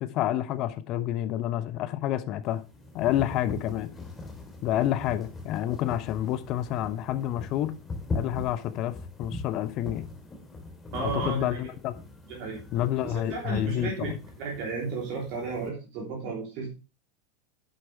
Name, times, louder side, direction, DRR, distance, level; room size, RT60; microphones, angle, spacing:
voice 1, 0.0-2.6 2.9-3.9 4.6-7.7 8.1-10.1 11.0-11.9 12.7-14.2, left 12 dB, 40° left, 1.0 m, -29 dB
sound 1, 2.4-15.7, left 3 dB, 20° left, 3.5 m, -41 dB
voice 2, 10.9-11.4 12.3-12.6 13.0-14.1 14.4-16.7, right 4 dB, 45° right, 3.3 m, -33 dB
11.0 x 8.9 x 3.3 m
figure-of-eight pair, 85°, 0 cm